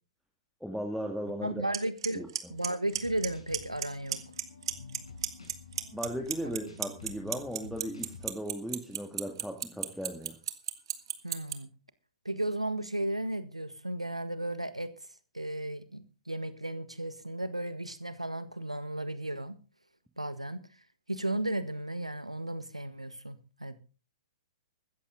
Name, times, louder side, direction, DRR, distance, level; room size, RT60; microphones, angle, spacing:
voice 1, 0.6-1.6 2.2-2.3 5.9-10.4, equal, ahead, 2.0 m, -37 dB
voice 2, 1.4-2.2 2.5-4.2 11.2-11.7 12.2-14.9 15.3-19.6 20.2-20.6 21.1-23.8, right 1 dB, 90° right, 1.5 m, -34 dB
Clock, 1.7-1.8 2.0-2.4 2.6-3.3 3.5-3.8 4.1-5.0 5.2-11.5, right 10 dB, 55° right, 1.6 m, -30 dB
sound 1, 2.9-8.3, left 3 dB, 75° left, 5.5 m, -49 dB
15.5 x 14.0 x 3.8 m
figure-of-eight pair, 110°, 3 cm